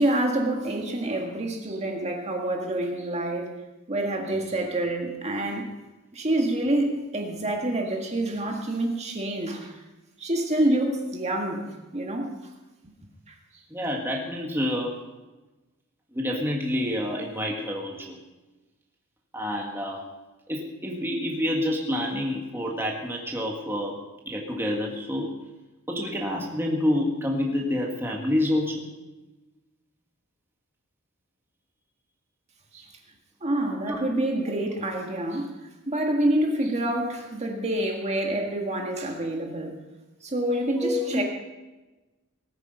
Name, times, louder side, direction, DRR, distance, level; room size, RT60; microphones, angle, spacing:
voice 1, 0.0-3.5 3.9-5.7 6.1-9.8 10.2-12.3 13.3-13.4 32.7-32.9 33.4-35.5 35.9-39.7 40.2-41.2, right 1 dB, 30° right, 1 dB, 1.8 m, -27 dB
voice 2, 13.7-15.0 16.1-18.2 19.3-20.1 20.5-24.0 24.3-25.3 25.9-28.9 33.9-34.1 40.8-41.2, left 1 dB, 10° right, -1 dB, 1.8 m, -28 dB
19.0 x 9.3 x 5.6 m, 1.1 s
head